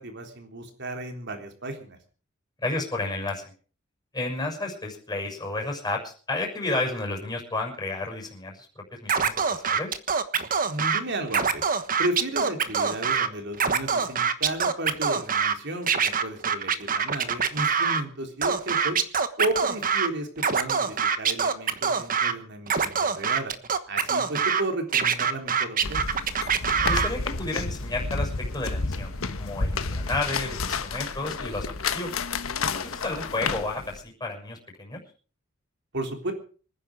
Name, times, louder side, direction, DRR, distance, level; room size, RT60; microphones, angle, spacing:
voice 1, 0.0-2.0 10.7-11.7 12.0-19.0 19.4-23.5 23.9-26.0 35.9-36.3, right 1 dB, 60° right, 4 dB, 3.6 m, -33 dB
voice 2, 2.6-3.4 4.1-8.7 9.0-9.9 26.8-32.2 32.7-35.0, left 2 dB, 20° left, 1 dB, 6.5 m, -32 dB
Scratching (performance technique), 9.1-11.0 11.3-13.3 13.5-15.5 15.9-18.0 18.4-20.1 20.4-22.3 22.7-24.6 24.9-27.1, right 6 dB, 45° right, 1.3 m, -24 dB
sound 1, 25.8-34.0, left 4 dB, 85° left, 1.3 m, -30 dB
25.5 x 10.0 x 4.9 m, 0.40 s
head